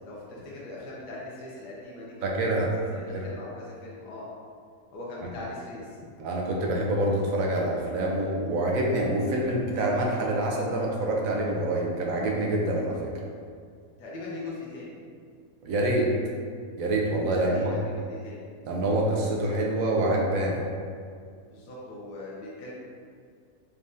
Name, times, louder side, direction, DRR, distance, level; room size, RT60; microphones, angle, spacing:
voice 1, 0.0-2.4 2.9-4.3 4.9-6.0 14.0-15.0 17.3-18.5 21.4-22.7, left 2 dB, 85° left, -6 dB, 1.3 m, -40 dB
voice 2, 2.2-2.8 3.1-3.3 5.2-5.3 6.2-13.1 15.6-16.1 16.8-17.7 18.7-20.6, right 1 dB, 70° right, -1 dB, 0.9 m, -26 dB
4.2 x 2.6 x 3.5 m, 2.2 s
omnidirectional pair, 1.7 m